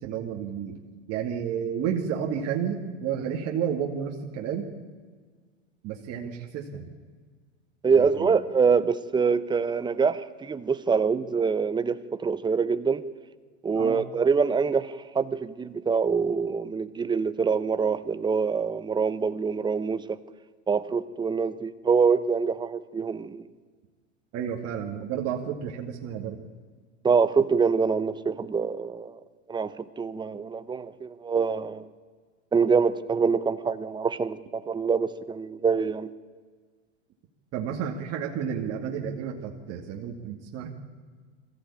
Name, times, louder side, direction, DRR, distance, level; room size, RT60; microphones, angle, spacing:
voice 1, 0.0-0.7 1.1-4.7 5.8-6.9 7.9-8.4 13.7-14.0 24.3-26.4 37.5-40.7, right 8 dB, 45° right, 1 dB, 2.3 m, -31 dB
voice 2, 7.8-13.0 13.6-20.2 20.7-23.5 27.0-29.2 29.5-31.9 32.5-36.1, right 5 dB, 10° right, 13 dB, 0.8 m, -25 dB
22.0 x 15.0 x 8.7 m, 1.5 s
hypercardioid pair, 115°, 36 cm